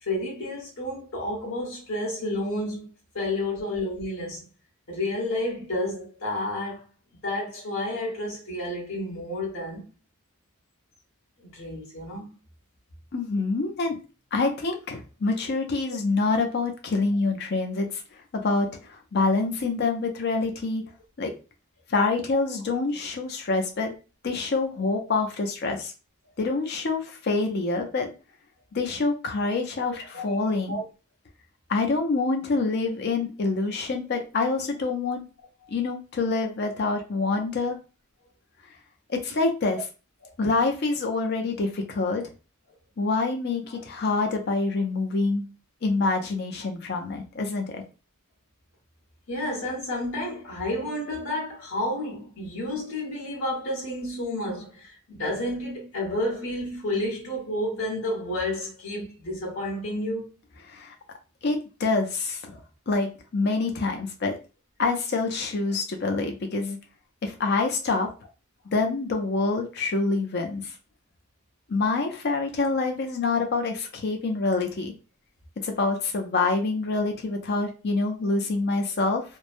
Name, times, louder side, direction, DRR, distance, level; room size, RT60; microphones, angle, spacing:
voice 1, 0.0-4.5 4.9-6.9 7.2-9.8 11.4-12.3 30.1-30.8 40.2-40.3 49.3-60.3 62.5-62.6, left 1 dB, 85° left, 1.3 m, -31 dB
voice 2, 13.1-14.0 14.3-20.8 21.2-21.3 21.9-23.9 24.2-25.9 26.4-28.1 28.7-30.8 31.7-35.2 35.7-37.8 39.1-39.8 40.4-42.3 43.0-45.5 45.8-47.8 60.7-60.9 61.4-62.6 62.9-64.4 64.8-66.8 67.2-68.1 68.7-70.7 71.7-74.9 75.6-79.2, left 3 dB, 50° left, 0.5 m, -26 dB
3.1 x 2.1 x 2.5 m
head